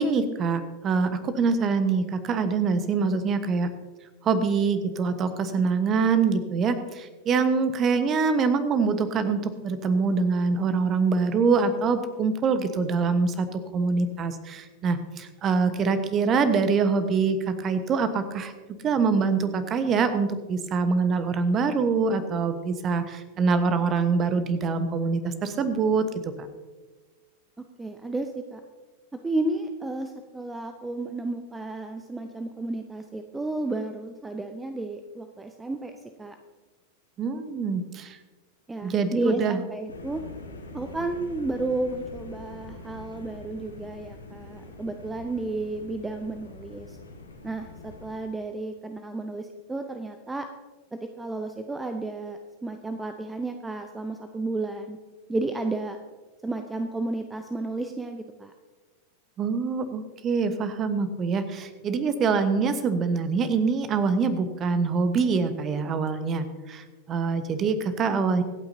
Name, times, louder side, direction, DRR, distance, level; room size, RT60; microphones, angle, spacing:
voice 1, 0.0-3.7 4.2-18.5 18.8-26.1 26.4-26.5 37.2-38.2 38.8-39.6 59.4-68.4, right 5 dB, 30° right, 10 dB, 1.2 m, -24 dB
voice 2, 27.6-28.6 29.2-35.9 36.2-36.4 38.7-40.2 40.7-47.0 47.4-50.5 50.9-55.0 55.3-56.0 56.4-58.5, right 2 dB, 10° right, 6 dB, 0.7 m, -32 dB
sound 1, 39.9-48.2, left 3 dB, 75° left, 1.8 m, -44 dB
25.0 x 8.9 x 2.8 m, 1.3 s
figure-of-eight pair, 90°, 0 cm